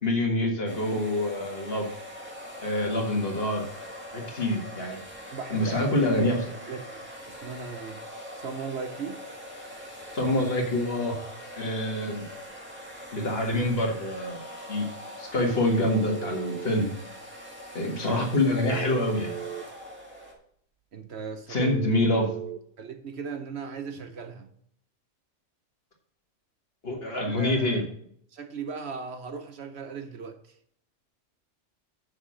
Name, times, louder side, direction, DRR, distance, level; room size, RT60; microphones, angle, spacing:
voice 1, 0.0-1.9 2.6-3.7 4.1-5.0 5.5-6.5 10.1-11.2 11.6-12.3 13.1-14.4 14.7-14.9 15.2-16.9 17.7-19.3 21.5-22.3 26.8-27.8, left 1 dB, 50° left, 1.9 m, -26 dB
sound 1, 0.7-20.3, equal, 10° right, 1.7 m, -43 dB
voice 2, 5.3-6.0 6.3-9.2 20.9-21.7 22.8-24.5 27.2-27.9 28.3-30.4, right 5 dB, 60° right, 1.0 m, -38 dB
Telephone, 15.7-16.7 18.6-19.7 21.6-22.6, right 13 dB, 90° right, 1.0 m, -36 dB
6.5 x 5.9 x 6.3 m
omnidirectional pair, 1.3 m